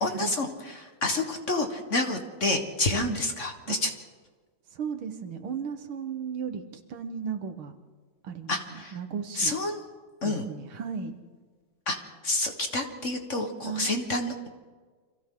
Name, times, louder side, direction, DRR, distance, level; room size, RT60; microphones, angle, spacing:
voice 1, 0.0-3.9 8.5-9.0 9.3-9.8 10.2-10.5 11.9-12.0 12.2-14.5, left 2 dB, 40° left, 5 dB, 1.6 m, -29 dB
voice 2, 4.7-6.6 6.9-7.7 8.2-9.6 10.2-11.1 13.6-13.9, right 6 dB, 80° right, 7 dB, 2.2 m, -35 dB
29.0 x 26.0 x 3.9 m, 1.5 s
omnidirectional pair, 2.3 m